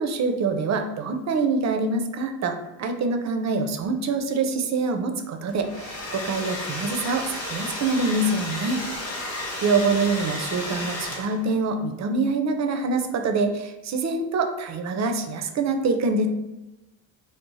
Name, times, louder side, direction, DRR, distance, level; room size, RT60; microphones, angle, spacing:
voice 1, 0.0-8.8 9.6-16.3, right 3 dB, 40° right, 5 dB, 0.4 m, -25 dB
Domestic sounds home sounds, 5.5-11.5, left 1 dB, 35° left, 0.8 m, -33 dB
2.6 x 2.0 x 3.0 m, 1.0 s
cardioid pair, 75°, 45 cm